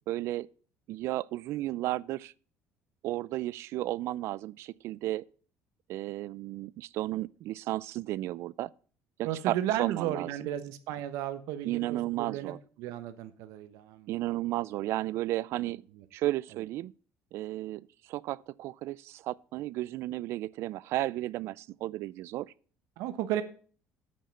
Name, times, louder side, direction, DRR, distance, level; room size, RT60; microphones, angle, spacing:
voice 1, 0.1-0.5 0.9-2.3 3.0-5.3 5.9-8.7 9.2-10.3 11.6-12.6 14.1-15.8 16.1-16.9 17.3-22.5, right 16 dB, 55° right, 0.4 m, -33 dB
voice 2, 9.2-12.5 12.8-14.1 15.0-15.1 15.6-15.7 16.0-16.1 16.5-16.6 23.0-23.4, right 12 dB, 80° right, 1.1 m, -34 dB
8.7 x 5.5 x 7.6 m
cardioid pair, 165°, 5 cm